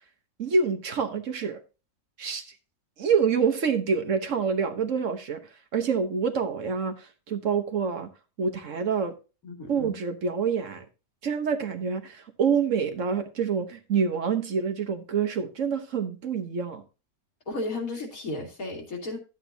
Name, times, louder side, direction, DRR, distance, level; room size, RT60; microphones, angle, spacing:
voice 1, 0.4-1.6 2.2-2.4 3.0-5.4 5.7-8.1 8.4-9.1 9.7-10.8 11.2-16.8, right 6 dB, 60° right, 1.3 m, -27 dB
voice 2, 9.4-10.0 17.5-19.2, left 2 dB, 70° left, 2.7 m, -34 dB
12.0 x 8.1 x 2.7 m
omnidirectional pair, 1.6 m